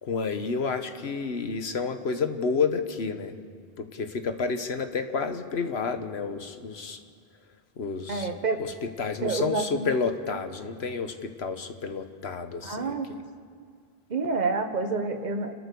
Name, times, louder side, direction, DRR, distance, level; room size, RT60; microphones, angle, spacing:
voice 1, 0.0-3.3 3.8-7.0 7.8-8.3 8.6-13.0, left 5 dB, 90° left, 8 dB, 1.5 m, -30 dB
voice 2, 8.1-8.6 9.2-9.6 12.6-13.1 14.1-15.5, right 4 dB, 45° right, 5 dB, 1.5 m, -28 dB
30.0 x 13.0 x 6.9 m, 2.1 s
omnidirectional pair, 1.0 m